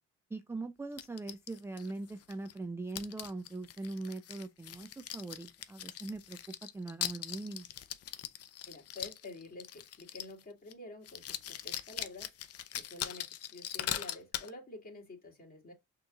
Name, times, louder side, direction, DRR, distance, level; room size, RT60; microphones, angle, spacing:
voice 1, 0.3-6.4 6.7-7.7, right 2 dB, 10° right, 0.3 m, -41 dB
sound 1, 1.0-2.6 2.9-10.4 10.7-10.8 11.0-14.5, left 11 dB, 55° left, 0.6 m, -41 dB
voice 2, 8.7-12.3 12.7-15.7, left 2 dB, 30° left, 2.2 m, -49 dB
6.1 x 3.0 x 2.3 m
cardioid pair, 90°, 30 cm